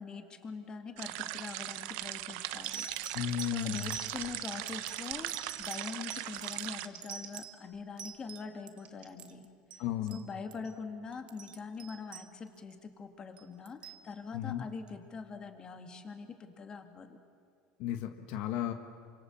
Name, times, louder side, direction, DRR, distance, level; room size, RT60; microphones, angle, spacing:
voice 1, 0.0-2.9 3.1-9.5 10.1-17.2, left 5 dB, 30° left, 6 dB, 2.3 m, -43 dB
sound 1, 1.0-6.9, right 16 dB, 70° right, 0.9 m, -39 dB
Scissors, 1.6-1.7 2.7-2.8 3.4-7.3 8.8-9.1, right 8 dB, 50° right, 3.7 m, -50 dB
sound 2, 1.8-2.1 2.6-8.8 9.1-9.8 10.1-10.2 10.5-10.7 11.1-12.7 13.4-14.0 14.9-15.0, right 7 dB, 35° right, 1.5 m, -45 dB
voice 2, 3.1-3.9 9.8-10.2 14.3-14.6 17.8-18.7, left 11 dB, 65° left, 7 dB, 1.5 m, -34 dB
27.5 x 25.5 x 7.2 m, 2.2 s
supercardioid pair, 120°, 3 cm